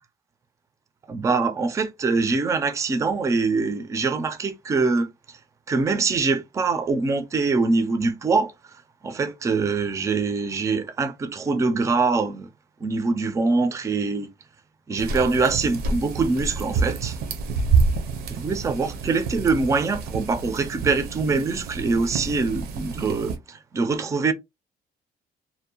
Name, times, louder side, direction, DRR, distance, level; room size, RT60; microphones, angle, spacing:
voice 1, 1.1-5.1 5.7-8.5 9.0-12.5 12.8-14.3 14.9-17.2 18.3-24.3, right 4 dB, 20° right, 0.3 m, -24 dB
sound 1, 15.0-23.4, right 4 dB, 80° right, 0.6 m, -28 dB
2.5 x 2.0 x 2.7 m
cardioid pair, 150°, 16 cm